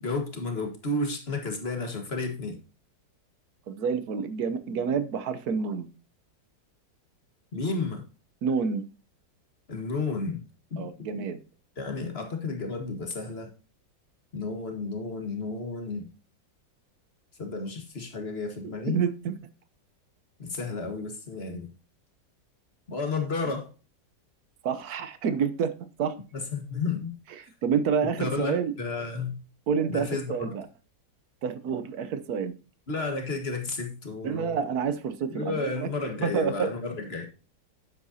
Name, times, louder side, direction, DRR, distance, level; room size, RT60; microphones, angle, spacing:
voice 1, 0.0-2.6 7.5-8.0 9.7-10.4 10.7-11.1 11.8-13.5 14.3-16.1 17.4-19.0 20.4-21.7 22.9-23.7 26.3-27.1 28.2-29.4 29.9-30.3 32.9-34.6 35.3-37.3, left 3 dB, 35° left, 4 dB, 1.7 m, -32 dB
voice 2, 3.7-5.9 8.4-8.8 10.8-11.4 18.9-19.3 24.6-25.7 26.0-26.2 27.4-28.7 29.7-30.7 31.4-32.5 34.2-35.9 36.2-36.7, right 6 dB, 65° right, 13 dB, 1.2 m, -28 dB
9.5 x 7.8 x 2.7 m, 0.34 s
omnidirectional pair, 1.9 m